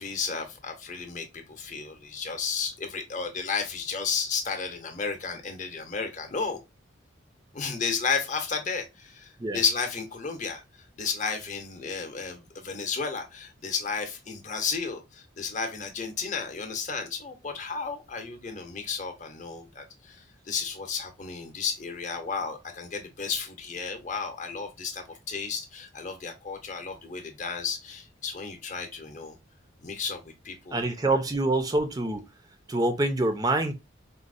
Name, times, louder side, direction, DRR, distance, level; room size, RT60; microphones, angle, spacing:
voice 1, 0.0-6.6 7.5-29.3 29.8-31.2, left 5 dB, 40° left, 0.7 m, -33 dB
voice 2, 30.7-32.2 32.7-33.7, right 2 dB, 20° right, 0.4 m, -25 dB
4.0 x 2.0 x 2.4 m
head